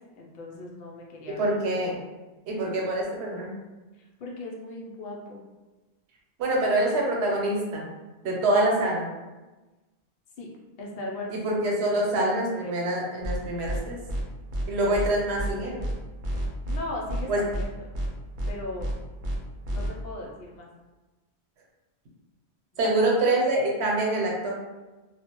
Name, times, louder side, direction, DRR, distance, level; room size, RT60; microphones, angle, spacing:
voice 1, 0.2-1.5 3.9-5.4 10.4-10.5 10.8-11.3 12.0-12.1 12.5-12.7 16.7-17.7 18.5-18.9 19.7-20.7 22.7-23.1, left 2 dB, 70° left, -2 dB, 0.8 m, -38 dB
voice 2, 1.3-2.0 2.5-3.6 6.4-7.8 8.2-9.1 11.3-14.0 14.7-15.8 17.3-17.4 22.8-24.5, right 1 dB, 85° right, -2 dB, 0.9 m, -25 dB
sound 1, 13.2-13.4 13.6-13.8 14.1-14.2 14.5-14.7 14.9-15.1 15.4-15.5 15.8-15.9 16.2-16.8 17.1-17.2 17.5-17.7 17.9-18.1 18.4-18.5 18.8-18.9 19.2-19.4 19.6-19.9, right 1 dB, 60° right, 0.6 m, -29 dB
2.3 x 2.1 x 2.9 m, 1.2 s
omnidirectional pair, 1.1 m